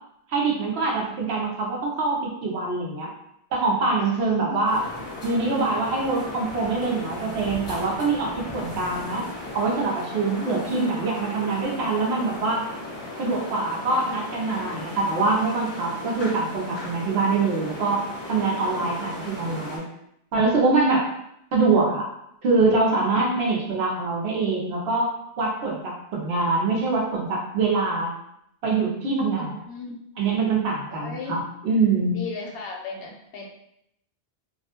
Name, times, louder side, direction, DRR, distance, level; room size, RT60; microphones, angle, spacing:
voice 1, 0.3-3.1 3.5-4.8 5.2-9.2 9.5-12.6 13.2-19.8 20.3-21.1 21.5-22.1 22.4-28.1 28.6-29.5 30.2-32.1, right 3 dB, 80° right, -2 dB, 0.9 m, -24 dB
voice 2, 4.0-4.6 8.7-8.8 10.2-10.9 23.2-23.8 29.7-30.0 30.9-31.4 32.1-33.5, left 3 dB, 70° left, -1 dB, 0.7 m, -36 dB
sound 1, 4.6-19.8, left 1 dB, 30° left, 0.6 m, -36 dB
2.3 x 2.1 x 2.8 m, 0.77 s
omnidirectional pair, 1.1 m